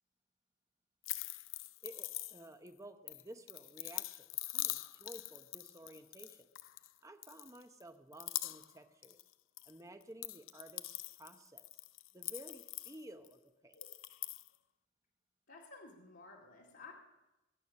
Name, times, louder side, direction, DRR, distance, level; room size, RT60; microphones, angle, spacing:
sound 1, 1.0-2.7 3.1-6.9 7.2-7.8 8.1-8.8 9.0-9.7 10.0-13.3 13.7-14.5, left 16 dB, 90° left, 0.5 m, -43 dB
voice 1, 1.8-6.5 7.0-9.2 9.7-11.7 12.1-13.8, right 1 dB, 15° right, 7 dB, 0.9 m, -54 dB
voice 2, 15.5-16.9, left 3 dB, 75° left, -4 dB, 2.2 m, -54 dB
22.5 x 9.2 x 5.5 m, 1.0 s
head